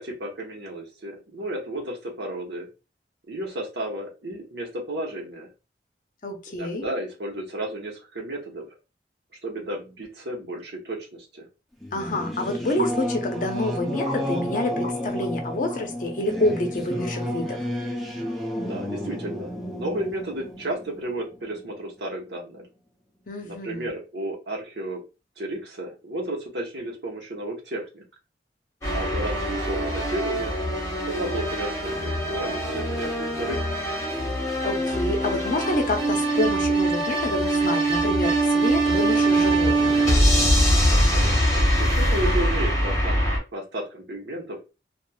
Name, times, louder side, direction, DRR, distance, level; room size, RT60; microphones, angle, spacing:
voice 1, 0.0-2.7 3.3-5.5 6.5-8.7 9.4-11.5 18.6-22.6 23.4-25.0 25.4-28.0 28.9-30.5 31.1-33.7 40.8-43.2 43.5-44.6, right 1 dB, 75° right, 1.0 m, -33 dB
voice 2, 6.2-6.8 11.9-17.6 23.3-23.9 34.6-40.0, left 1 dB, 45° left, 0.6 m, -28 dB
sound 1, 10.6-10.7 12.8-12.9 13.4-13.5 14.0-14.2 14.8-14.9 15.2-15.3 15.7-15.9, left 3 dB, 45° right, 0.8 m, -33 dB
Singing / Musical instrument, 11.8-21.9, left 1 dB, ahead, 0.5 m, -31 dB
sound 2, 28.8-43.4, right 1 dB, 15° left, 1.0 m, -23 dB
3.0 x 2.4 x 2.2 m
head